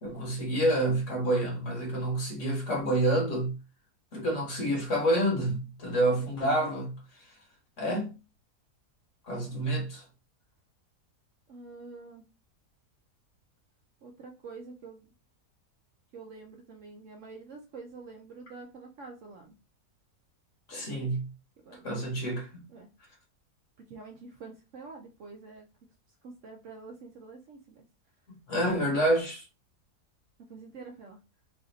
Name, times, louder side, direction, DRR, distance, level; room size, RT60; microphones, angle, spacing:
voice 1, 0.0-3.6 4.1-6.9 7.8-8.1 9.3-10.0 20.7-21.3 21.8-22.6 28.5-29.4, right 1 dB, 55° left, 1.3 m, -28 dB
voice 2, 6.0-6.7 11.5-12.3 14.0-15.1 16.1-19.5 20.7-21.2 21.6-21.9 22.7-22.9 23.8-25.7 26.2-27.8 28.5-29.0 30.4-31.2, right 4 dB, 65° right, 0.8 m, -47 dB
3.2 x 2.6 x 3.8 m
omnidirectional pair, 1.7 m